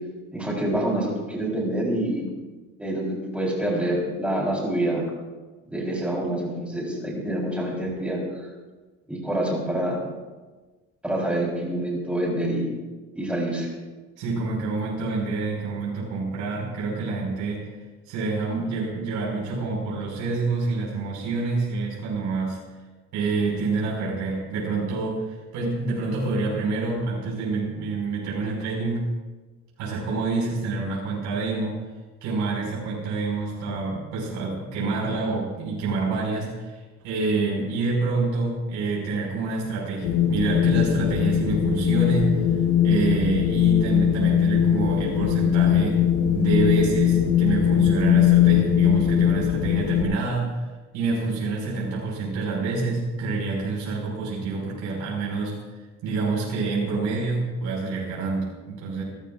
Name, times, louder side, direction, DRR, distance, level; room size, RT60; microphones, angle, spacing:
voice 1, 0.3-2.2 2.8-5.1 5.7-8.2 9.1-10.0 11.0-12.7 13.2-13.7, right 1 dB, 5° right, -3 dB, 3.9 m, -26 dB
voice 2, 14.2-17.7 18.1-22.6 23.1-29.0 29.8-31.8 32.2-36.8 37.0-42.3 42.8-46.0 46.3-50.7 50.9-55.6 56.0-59.0, right 3 dB, 75° right, -4 dB, 5.7 m, -27 dB
Wind, 40.0-50.0, left 9 dB, 70° left, 1.4 m, -20 dB
27.5 x 13.0 x 2.5 m, 1.3 s
cardioid pair, 165°, 29 cm